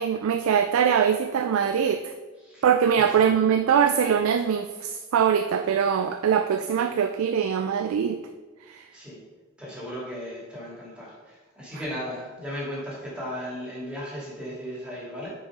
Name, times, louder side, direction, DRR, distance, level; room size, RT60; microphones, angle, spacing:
voice 1, 0.0-2.1 2.6-8.2 8.7-8.8, right 7 dB, 85° right, 8 dB, 0.3 m, -22 dB
voice 2, 3.0-3.3 8.9-9.2 9.6-15.3, equal, 5° right, -6 dB, 2.2 m, -36 dB
5.7 x 4.6 x 4.7 m, 1.3 s
head